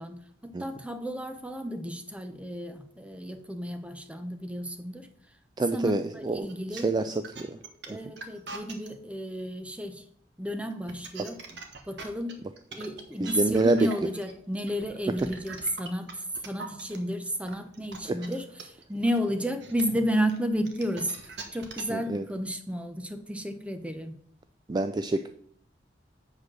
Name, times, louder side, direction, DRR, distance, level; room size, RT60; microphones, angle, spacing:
voice 1, 0.0-5.1 5.7-7.0 7.9-10.0 10.4-11.4 11.9-12.4 12.7-24.2, equal, 5° right, 0.8 m, -32 dB
voice 2, 5.6-7.6 7.9-8.0 13.2-13.8 18.0-18.2 21.9-22.2 24.7-25.3, right 2 dB, 25° right, 0.3 m, -27 dB
sound 1, 6.5-8.9 10.7-17.0 17.5-22.0, right 4 dB, 70° right, 1.4 m, -42 dB
7.8 x 5.1 x 6.2 m
head